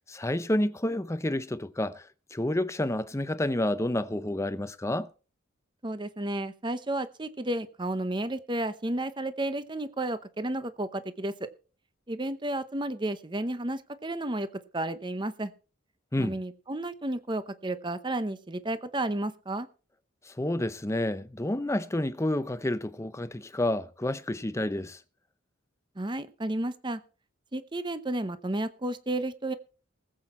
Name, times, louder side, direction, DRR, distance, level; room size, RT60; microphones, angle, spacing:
voice 1, 0.1-5.1 16.1-16.4 20.2-25.0, left 1 dB, 15° left, 0.6 m, -29 dB
voice 2, 5.8-11.5 12.1-14.5 14.7-15.5 16.2-19.7 26.0-27.0 27.5-29.5, right 1 dB, 20° right, 0.8 m, -32 dB
20.0 x 7.9 x 4.3 m
head